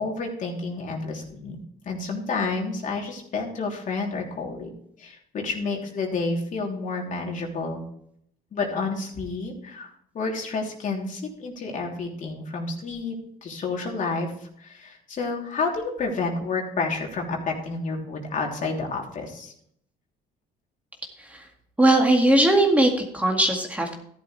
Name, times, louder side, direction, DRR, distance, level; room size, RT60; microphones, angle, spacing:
voice 1, 0.0-4.7 5.0-7.8 8.5-13.1 13.4-19.5, left 3 dB, 50° left, 0 dB, 3.2 m, -30 dB
voice 2, 21.8-23.9, right 1 dB, 10° right, 1 dB, 2.0 m, -19 dB
13.5 x 11.5 x 3.3 m, 0.68 s
cardioid pair, 110°, 17 cm